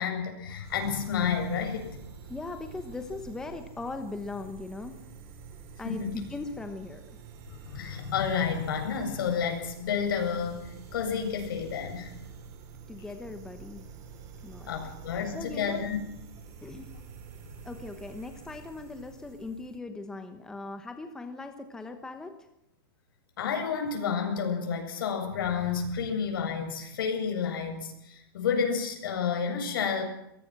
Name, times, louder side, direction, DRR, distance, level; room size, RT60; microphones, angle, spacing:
voice 1, 0.0-1.9 5.8-6.2 7.6-12.1 14.7-16.0 23.4-30.0, left 6 dB, 65° left, 4 dB, 7.9 m, -30 dB
sound 1, 0.6-19.8, right 6 dB, 25° right, 3.6 m, -48 dB
voice 2, 2.3-5.0 5.8-7.0 12.9-13.8 14.4-14.7 15.3-15.9 16.6-16.9 17.6-22.5, left 3 dB, 5° left, 7 dB, 1.1 m, -39 dB
23.0 x 18.5 x 6.1 m, 0.83 s
supercardioid pair, 170°, 13 cm